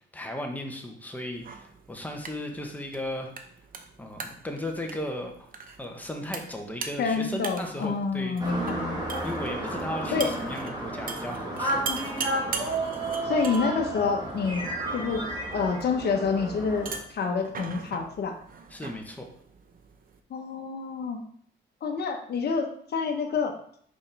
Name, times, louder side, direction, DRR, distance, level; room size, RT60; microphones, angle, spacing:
voice 1, 0.1-3.3 4.0-5.5 5.8-8.4 9.2-12.2 18.7-19.3, left 1 dB, 10° left, 2 dB, 1.2 m, -36 dB
sound 1, 1.3-20.2, right 5 dB, 45° right, 0.8 m, -42 dB
voice 2, 7.0-9.2 10.1-10.3 11.9-12.0 13.3-15.2 15.5-18.3 20.3-21.2 21.8-23.5, left 5 dB, 55° left, 3 dB, 1.1 m, -28 dB
sound 2, 8.4-17.0, right 2 dB, 20° right, 1.8 m, -32 dB
5.3 x 5.3 x 3.4 m, 0.62 s
cardioid pair, 90°, 20 cm